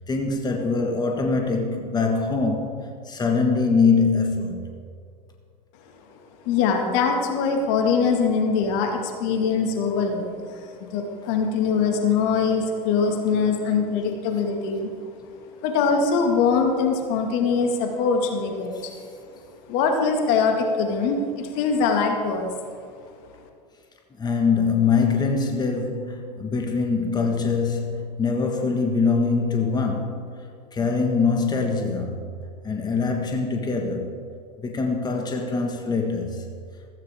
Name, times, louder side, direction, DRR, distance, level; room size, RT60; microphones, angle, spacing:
voice 1, 0.1-2.8 3.0-4.7 18.7-18.9 24.2-30.4 30.7-32.3 32.6-34.2 34.6-36.5, left 4 dB, 20° left, 1.6 m, -23 dB
voice 2, 6.5-10.4 10.8-14.9 15.6-18.9 19.7-22.5, left 5 dB, 60° left, 2.1 m, -22 dB
15.0 x 14.5 x 3.7 m
hypercardioid pair, 90°, 21 cm